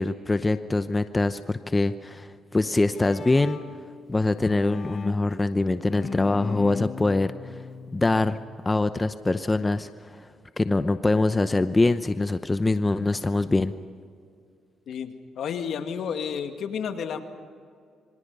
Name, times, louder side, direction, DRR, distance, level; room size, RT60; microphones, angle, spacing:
voice 1, 0.0-3.6 4.1-7.6 7.9-8.4 8.6-10.3 10.6-13.7, left 2 dB, 20° left, 10 dB, 0.8 m, -24 dB
Bowed string instrument, 2.6-8.7, left 5 dB, 45° left, 1.1 m, -37 dB
voice 2, 14.9-17.2, left 7 dB, 70° left, 6 dB, 2.2 m, -31 dB
27.5 x 24.5 x 5.5 m, 2.2 s
cardioid pair, 90°, 0 cm